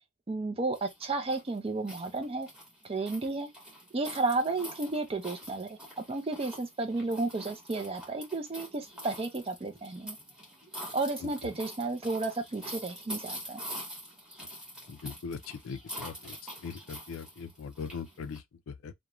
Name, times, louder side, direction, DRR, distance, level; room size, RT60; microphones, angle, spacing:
voice 1, 0.3-2.5 2.8-3.5 3.9-5.8 6.1-10.2 10.9-13.6, right 3 dB, 25° right, 0.4 m, -32 dB
sound 1, 0.7-18.4, equal, 5° right, 0.9 m, -45 dB
voice 2, 14.9-16.4 16.6-18.9, left 5 dB, 75° left, 0.4 m, -40 dB
2.4 x 2.1 x 2.9 m
head